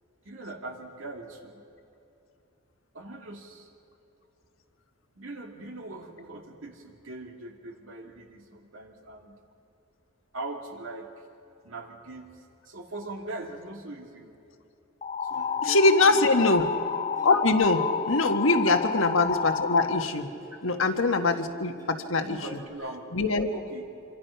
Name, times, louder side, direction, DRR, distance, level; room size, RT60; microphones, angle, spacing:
voice 1, 0.2-1.6 2.9-3.7 5.1-9.4 10.3-11.1 11.6-14.4 15.2-16.6 18.6-18.8 22.2-23.1 23.5-23.9, right 2 dB, 75° right, 2 dB, 2.6 m, -41 dB
sound 1, 15.0-20.0, left 6 dB, 35° left, 0.4 m, -30 dB
Plucked string instrument, 15.3-22.7, equal, 15° right, 4.5 m, -49 dB
voice 2, 15.6-16.6 17.2-20.3 20.6-22.4 23.1-23.5, left 3 dB, 75° left, 5 dB, 1.6 m, -23 dB
26.5 x 24.5 x 5.8 m, 2.8 s
head